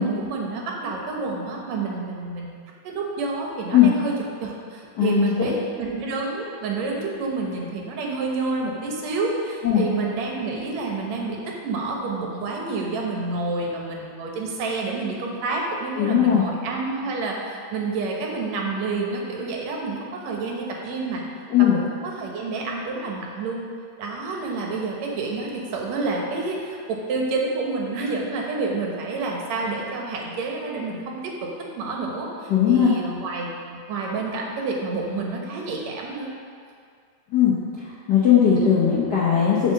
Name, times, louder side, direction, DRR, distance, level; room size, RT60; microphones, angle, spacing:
voice 1, 0.0-2.5 2.8-4.2 4.4-17.4 17.7-21.2 21.6-23.6 24.0-36.3 38.6-38.8, right 3 dB, 70° right, -1 dB, 2.3 m, -29 dB
voice 2, 5.0-5.5 9.6-9.8 16.0-16.4 21.5-21.8 32.5-32.9 37.3-37.6 38.1-39.7, left 9 dB, 75° left, -7 dB, 0.9 m, -18 dB
7.6 x 5.0 x 6.5 m, 2.2 s
omnidirectional pair, 3.4 m